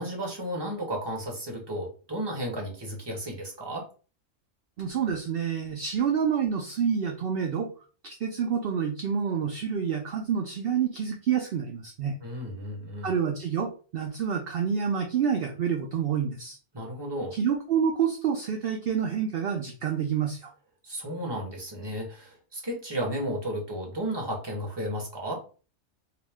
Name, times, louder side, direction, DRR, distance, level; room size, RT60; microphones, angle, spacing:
voice 1, 0.0-3.9 12.2-13.1 16.7-17.3 20.8-25.4, equal, 20° right, -1 dB, 1.1 m, -33 dB
voice 2, 4.8-7.7 8.0-12.2 13.0-16.6 17.3-20.5, right 7 dB, 60° right, 2 dB, 0.6 m, -28 dB
4.7 x 2.1 x 3.5 m, 0.37 s
omnidirectional pair, 1.5 m